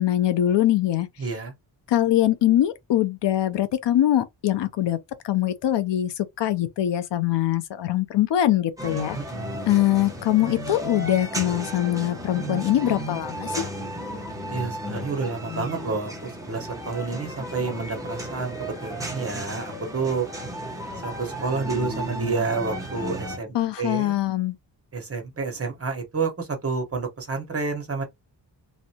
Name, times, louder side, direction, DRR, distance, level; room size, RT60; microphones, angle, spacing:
voice 1, 0.0-1.1 1.9-5.0 5.2-9.2 9.7-13.6 23.5-24.6, left 12 dB, 85° left, 0.6 m, -22 dB
voice 2, 1.2-1.5 9.1-9.6 14.5-20.3 21.0-24.2 24.9-28.0, right 4 dB, 35° right, 1.1 m, -29 dB
sound 1, 8.8-23.4, equal, 10° right, 0.9 m, -34 dB
3.1 x 2.8 x 2.8 m
wide cardioid pair, 155°, 42 cm